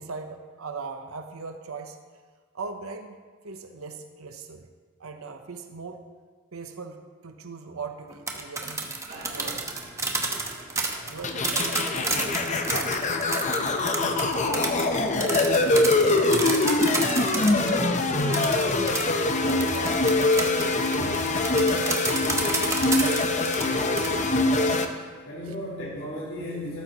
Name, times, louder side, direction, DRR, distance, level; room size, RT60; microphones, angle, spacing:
voice 1, 0.0-2.0 2.5-3.2 3.4-4.7 5.0-6.0 6.5-9.0 9.3-9.6 11.0-13.1 14.0-14.8 15.4-15.8 16.4-20.9 25.5-25.6, right 4 dB, 80° right, 6 dB, 0.8 m, -40 dB
sound 1, 8.1-17.7 18.3-24.1, right 3 dB, 15° right, 1.0 m, -30 dB
sound 2, 9.1-16.5, right 1 dB, 40° right, 1.9 m, -44 dB
sound 3, 11.2-24.8, left 2 dB, 35° left, 0.7 m, -24 dB
voice 2, 23.6-25.0 25.2-26.8, equal, 65° left, -6 dB, 4.0 m, -36 dB
13.5 x 12.5 x 3.0 m, 1.5 s
head